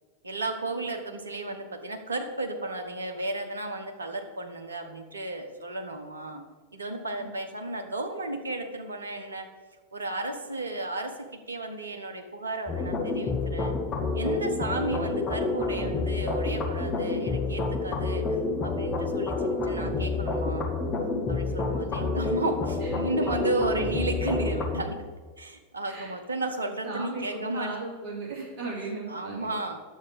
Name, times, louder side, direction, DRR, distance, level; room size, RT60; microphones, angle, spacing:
voice 1, 0.2-6.4 6.7-9.5 9.9-13.8 14.1-18.4 18.6-20.7 21.3-25.0 25.4-27.8 28.8-29.8, right 2 dB, 75° right, 5 dB, 1.0 m, -33 dB
sound 1, 12.7-24.8, left 3 dB, 25° left, 1.8 m, -28 dB
voice 2, 26.8-29.5, right 3 dB, 45° right, -3 dB, 3.4 m, -36 dB
9.9 x 7.2 x 5.0 m, 1.4 s
figure-of-eight pair, 90°, 0 cm